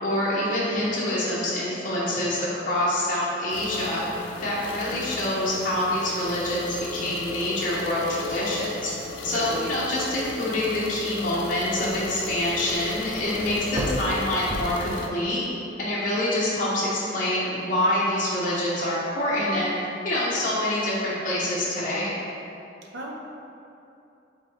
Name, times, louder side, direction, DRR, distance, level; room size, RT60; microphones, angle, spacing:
voice 1, 0.0-4.0 4.4-8.9 9.2-15.4 15.8-19.7 20.0-22.1, left 1 dB, 45° left, -8 dB, 0.8 m, -26 dB
sound 1, 3.5-15.1, left 3 dB, 90° left, 0.5 m, -36 dB
voice 2, 9.3-9.6 22.9-23.1, right 1 dB, 70° right, 0 dB, 0.6 m, -34 dB
sound 2, 11.3-15.5 15.8-16.4, equal, 20° right, 0.4 m, -35 dB
4.9 x 3.7 x 2.9 m, 2.7 s
head